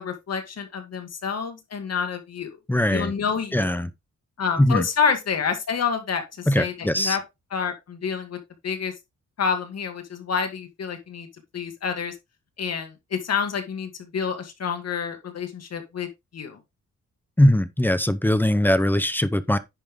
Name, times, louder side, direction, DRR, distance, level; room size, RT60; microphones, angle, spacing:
voice 1, 0.0-2.6 2.9-3.8 4.4-7.2 7.5-8.9 9.4-11.3 11.5-12.1 12.6-16.1 16.3-16.6, left 6 dB, 60° left, 2.1 m, -28 dB
voice 2, 2.7-3.1 3.5-3.9 4.6-4.9 6.5-7.2 17.4-19.6, left 1 dB, 5° left, 0.7 m, -20 dB
10.0 x 5.6 x 3.7 m
wide cardioid pair, 145°, 29 cm